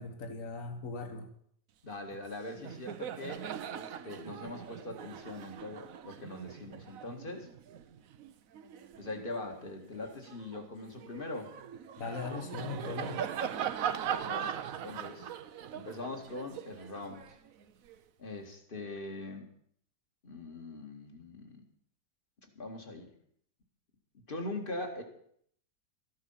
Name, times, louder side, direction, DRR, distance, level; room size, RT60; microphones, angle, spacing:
voice 1, 0.0-1.3 12.0-13.3, left 4 dB, 50° left, 6 dB, 2.0 m, -39 dB
voice 2, 1.8-3.5 3.7-7.5 9.0-11.5 14.1-14.6 14.8-15.3 15.7-17.4 18.2-19.5 20.2-21.7 22.6-23.1 24.3-25.0, left 2 dB, 30° left, 4 dB, 2.1 m, -42 dB
Laughter, 2.1-2.3 2.6-9.3 9.8-18.0, right 8 dB, 60° right, 1.0 m, -40 dB
14.0 x 11.5 x 5.7 m, 0.65 s
omnidirectional pair, 1.9 m